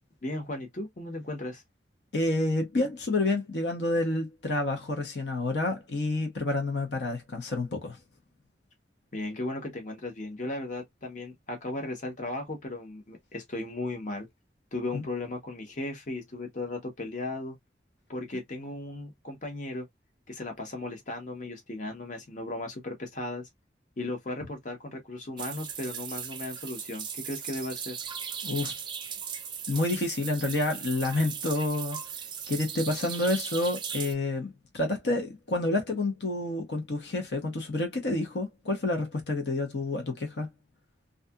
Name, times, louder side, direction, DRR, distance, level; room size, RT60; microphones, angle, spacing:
voice 1, 0.2-1.6 9.1-14.3 14.7-17.6 18.1-19.8 20.3-23.5 24.0-28.0, left 2 dB, 45° left, 0.9 m, -36 dB
voice 2, 2.1-8.0 14.9-15.0 28.4-28.8 29.7-32.0 32.5-40.5, left 2 dB, 75° left, 0.8 m, -29 dB
sound 1, 25.4-34.1, right 7 dB, 25° right, 0.5 m, -38 dB
2.7 x 2.4 x 2.2 m
head